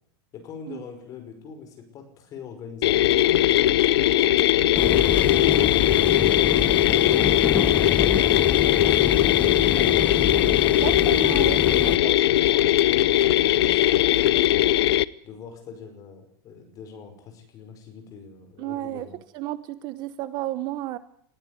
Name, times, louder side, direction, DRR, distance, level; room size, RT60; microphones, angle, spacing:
voice 1, 0.3-4.1 4.8-10.9 11.7-14.7 15.2-19.2, left 6 dB, 25° left, 6 dB, 5.4 m, -42 dB
sound 1, 2.8-15.0, left 13 dB, 90° left, 0.8 m, -20 dB
sound 2, 4.7-12.0, left 6 dB, 10° left, 0.8 m, -28 dB
voice 2, 10.7-12.2 18.6-19.1 19.3-21.0, right 15 dB, 35° right, 15 dB, 0.9 m, -32 dB
20.0 x 15.0 x 9.8 m, 0.68 s
supercardioid pair, 170°, 13 cm